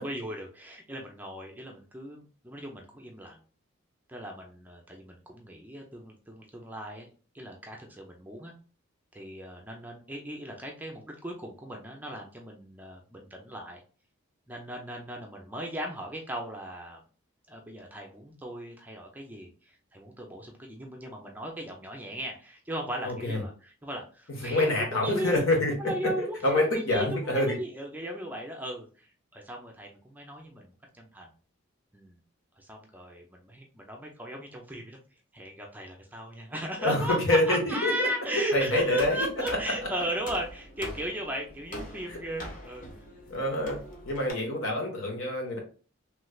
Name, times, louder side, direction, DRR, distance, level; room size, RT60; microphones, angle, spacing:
voice 1, 0.0-3.4 4.1-7.1 7.3-8.5 9.1-13.8 14.5-17.0 17.5-25.4 25.8-29.1 29.3-31.3 31.9-32.2 32.6-35.0 35.3-42.9 44.1-44.2 44.6-44.7, right 1 dB, 10° right, 1 dB, 0.4 m, -37 dB
voice 2, 23.0-23.4 24.4-25.7 26.4-27.6 36.8-38.1 38.3-39.3 42.1-42.2 43.3-43.8 44.1-45.6, left 1 dB, 70° left, 0 dB, 1.2 m, -26 dB
sound 1, 39.0-44.3, left 1 dB, 40° left, 0.8 m, -43 dB
3.2 x 3.1 x 2.3 m, 0.38 s
head